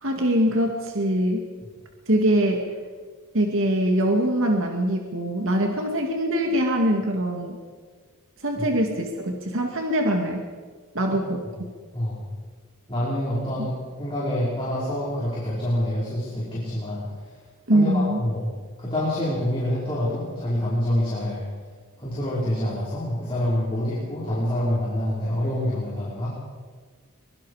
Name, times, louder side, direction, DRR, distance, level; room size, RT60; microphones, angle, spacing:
voice 1, 0.0-1.5 2.1-2.6 3.3-7.6 8.4-10.4 10.9-11.4 17.7-18.2, right 1 dB, 60° right, 2 dB, 2.1 m, -23 dB
voice 2, 11.9-12.3 12.9-17.0 17.7-18.5 18.8-21.5 22.0-26.3, left 1 dB, 25° left, -8 dB, 5.2 m, -26 dB
23.5 x 22.5 x 5.0 m, 1.5 s
head